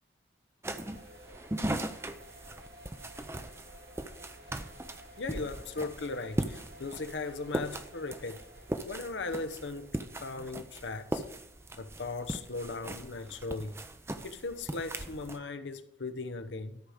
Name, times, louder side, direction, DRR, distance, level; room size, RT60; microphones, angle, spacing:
sound 1, 0.6-15.4, right 1 dB, 15° right, 0.5 m, -39 dB
sound 2, 0.8-13.7, right 1 dB, 60° right, 1.8 m, -56 dB
voice 1, 5.2-8.4 8.8-11.2 11.8-13.8 14.2-16.8, left 3 dB, 80° left, 0.8 m, -38 dB
13.0 x 5.0 x 6.5 m
head